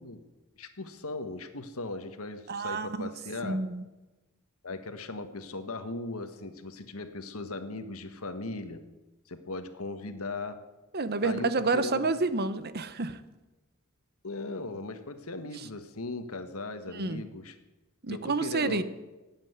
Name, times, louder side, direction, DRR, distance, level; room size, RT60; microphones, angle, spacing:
voice 1, 0.6-3.6 4.6-8.8 9.3-10.6 11.2-12.1 14.2-17.5 18.1-18.8, left 2 dB, 80° left, 9 dB, 1.6 m, -38 dB
voice 2, 2.5-3.1 3.4-3.8 10.9-13.2 15.5-15.7 16.9-17.2 18.0-18.8, right 3 dB, 50° right, 13 dB, 1.0 m, -29 dB
16.0 x 9.0 x 9.4 m, 1.1 s
head